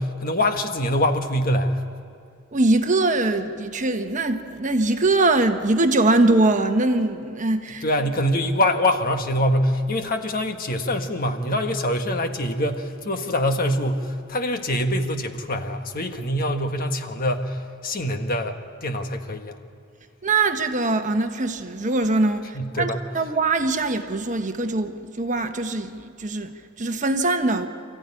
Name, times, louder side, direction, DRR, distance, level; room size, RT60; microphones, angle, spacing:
voice 1, 0.0-1.8 7.8-19.6 22.5-23.0, left 1 dB, 45° left, 1.4 m, -24 dB
voice 2, 2.5-7.8 20.2-27.7, right 2 dB, 40° right, 1.2 m, -22 dB
27.0 x 14.5 x 9.8 m
head